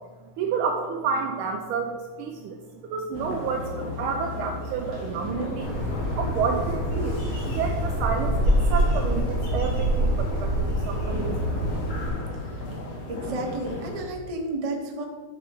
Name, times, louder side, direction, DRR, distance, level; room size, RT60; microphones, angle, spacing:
voice 1, 0.4-5.8 6.2-11.4 12.4-12.5, right 5 dB, 80° right, 4 dB, 1.4 m, -30 dB
sound 1, 3.1-14.0, left 2 dB, 45° left, 1.4 m, -36 dB
Bird, 5.6-12.1, right 1 dB, 85° left, 3.1 m, -25 dB
voice 2, 13.1-15.0, right 2 dB, 50° right, 1 dB, 0.4 m, -31 dB
7.1 x 6.2 x 4.7 m, 1.4 s
omnidirectional pair, 2.4 m